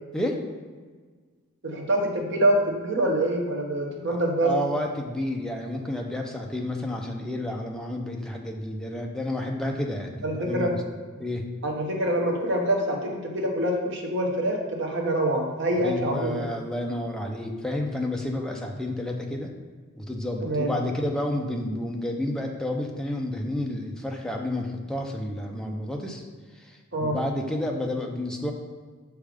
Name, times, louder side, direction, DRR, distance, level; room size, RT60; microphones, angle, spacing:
voice 1, 0.1-0.4 4.1-10.8 11.2-11.4 15.8-19.5 20.0-26.2 26.5-28.5, left 1 dB, 5° left, 1 dB, 0.6 m, -30 dB
voice 2, 1.6-4.5 10.2-10.7 11.6-16.4 20.4-20.7 26.9-27.2, right 1 dB, 55° right, 0 dB, 1.1 m, -25 dB
6.3 x 3.5 x 5.0 m, 1.5 s
head